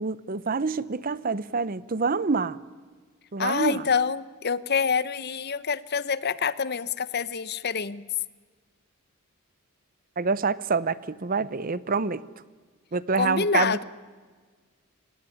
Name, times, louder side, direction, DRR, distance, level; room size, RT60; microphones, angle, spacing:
voice 1, 0.0-2.6 3.3-3.8 10.2-12.2 12.9-13.8, right 4 dB, 40° right, 18 dB, 0.7 m, -26 dB
voice 2, 3.4-8.0 13.2-13.8, left 6 dB, 50° left, 17 dB, 0.8 m, -26 dB
29.0 x 18.5 x 10.0 m, 1.5 s
head